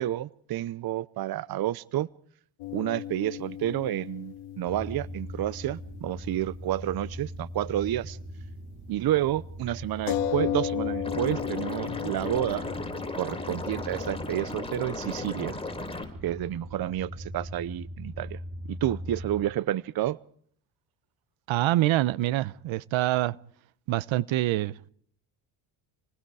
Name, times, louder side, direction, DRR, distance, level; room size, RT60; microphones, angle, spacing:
voice 1, 0.0-2.1 2.7-8.2 8.9-12.7 13.1-15.6 16.2-18.4 18.7-20.2, right 13 dB, 45° right, 0.8 m, -30 dB
sound 1, 2.6-6.5 6.7-6.8 10.1-15.3, left 10 dB, 75° left, 2.1 m, -35 dB
sound 2, 4.7-19.4, equal, 30° right, 3.6 m, -41 dB
Liquid, 11.0-16.0, left 2 dB, 10° left, 5.7 m, -36 dB
voice 2, 21.5-23.4 23.9-24.9, right 15 dB, 65° right, 0.9 m, -25 dB
28.5 x 19.5 x 4.9 m
supercardioid pair, 80°, 49 cm